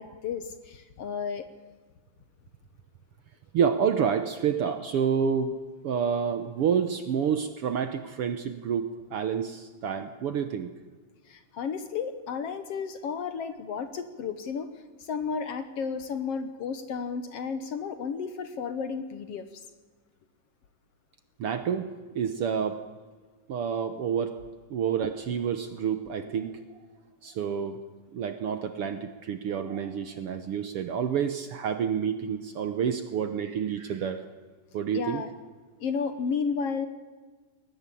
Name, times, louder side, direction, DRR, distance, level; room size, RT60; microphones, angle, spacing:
voice 1, 0.0-1.5 11.3-14.7 15.0-19.5 34.9-35.3 35.8-36.9, left 6 dB, 60° left, 10 dB, 1.9 m, -32 dB
voice 2, 3.5-5.6 5.8-10.7 21.4-22.8 23.5-24.4 24.7-26.8 27.2-27.8 28.1-34.2 34.7-35.2, right 7 dB, 60° right, 9 dB, 1.6 m, -29 dB
22.0 x 19.0 x 8.5 m, 1.4 s
omnidirectional pair, 3.5 m